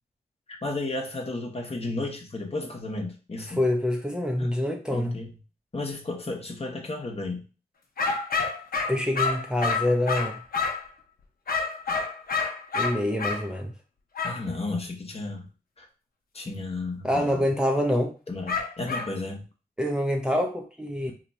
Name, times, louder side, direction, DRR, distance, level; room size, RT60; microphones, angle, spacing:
voice 1, 0.6-3.6 4.4-4.6 4.9-5.3 5.7-7.4 14.2-15.5 15.8-15.9 16.3-17.4 18.3-19.4, left 2 dB, 40° left, 1.0 m, -33 dB
voice 2, 3.6-5.2 8.9-10.4 12.7-13.7 17.0-18.1 19.8-21.1, left 1 dB, 5° right, 0.6 m, -26 dB
sound 1, 8.0-10.9 11.5-13.4 14.1-14.4 18.5-19.1, left 4 dB, 65° left, 0.7 m, -28 dB
2.9 x 2.2 x 4.1 m
cardioid pair, 45°, 16 cm